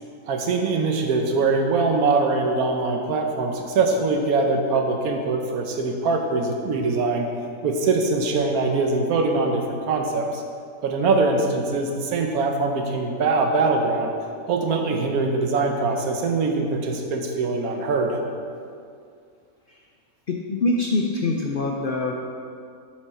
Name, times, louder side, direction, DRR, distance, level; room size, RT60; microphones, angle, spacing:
voice 1, 0.3-7.3 7.6-10.4 10.8-14.1 14.5-18.2, right 3 dB, 90° right, 3 dB, 1.3 m, -22 dB
voice 2, 20.3-22.1, left 2 dB, 60° left, -1 dB, 0.6 m, -24 dB
7.6 x 6.4 x 4.3 m, 2.3 s
omnidirectional pair, 1.5 m